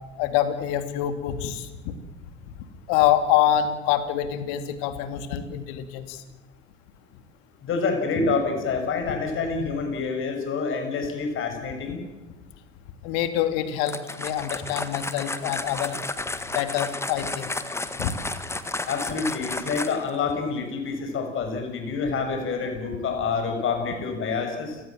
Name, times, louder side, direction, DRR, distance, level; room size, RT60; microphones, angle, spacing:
voice 1, 0.2-1.9 2.9-6.2 9.1-9.2 13.0-16.0 16.5-17.5 18.0-18.1, left 11 dB, 50° left, 9 dB, 2.8 m, -25 dB
voice 2, 7.6-12.0 18.9-24.8, left 4 dB, 35° left, 5 dB, 6.6 m, -27 dB
sound 1, 13.9-20.2, left 2 dB, 5° left, 1.6 m, -32 dB
29.5 x 18.5 x 7.6 m, 1.2 s
figure-of-eight pair, 80°, 36 cm